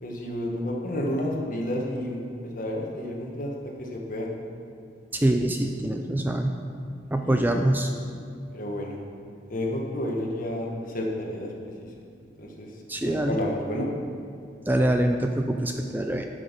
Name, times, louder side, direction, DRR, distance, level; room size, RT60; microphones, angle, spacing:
voice 1, 0.0-3.5 3.8-4.3 7.2-7.6 8.5-9.0 9.5-10.7 10.9-11.5 11.8-11.9 12.4-12.7 13.0-13.9, left 1 dB, 45° left, -1 dB, 1.5 m, -30 dB
voice 2, 5.1-6.6 7.1-7.9 12.9-13.4 14.7-16.2, right 1 dB, 10° right, 4 dB, 0.4 m, -24 dB
11.5 x 6.4 x 5.3 m, 2.3 s
head